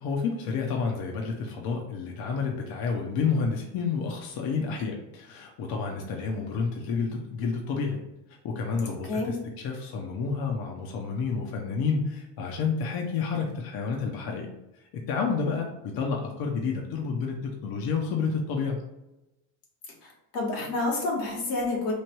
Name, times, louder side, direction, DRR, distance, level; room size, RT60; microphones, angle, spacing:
voice 1, 0.0-8.0 8.4-14.5 14.7-18.8, left 5 dB, 50° left, 1 dB, 0.8 m, -30 dB
voice 2, 20.0-21.9, left 2 dB, 85° left, -3 dB, 1.5 m, -29 dB
3.2 x 2.5 x 4.4 m, 0.93 s
supercardioid pair, 90°, 46 cm